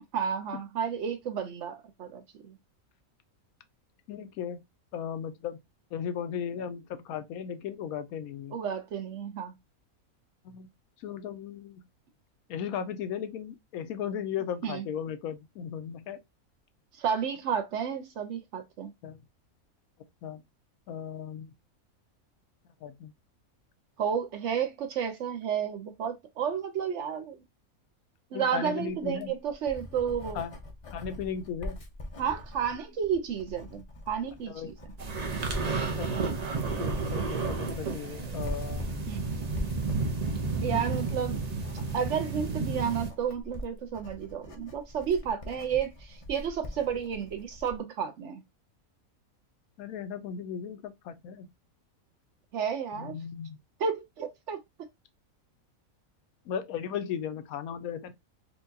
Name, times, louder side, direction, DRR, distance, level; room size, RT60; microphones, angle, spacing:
voice 1, 0.1-2.5 8.5-9.5 14.6-14.8 17.0-18.9 24.0-27.4 28.3-30.4 32.2-34.7 39.1-39.3 40.6-41.4 41.9-48.4 52.5-53.1 53.8-54.6, right 7 dB, 65° right, 0.8 m, -31 dB
voice 2, 4.1-4.6 4.9-5.6 5.9-8.6 10.4-10.7 11.0-11.8 12.5-16.2 19.0-19.2 20.2-20.4 20.9-21.5 22.8-23.1 28.3-29.3 30.3-30.5 30.9-31.8 34.5-34.7 35.9-36.1 36.8-39.1 40.7-40.8 49.8-51.5 53.0-53.6 56.5-58.1, left 8 dB, 80° left, 1.0 m, -36 dB
Writing, 29.0-47.8, left 1 dB, 45° left, 0.4 m, -43 dB
sound 1, 35.0-43.1, right 4 dB, 50° right, 0.5 m, -32 dB
4.5 x 2.3 x 2.6 m
omnidirectional pair, 1.5 m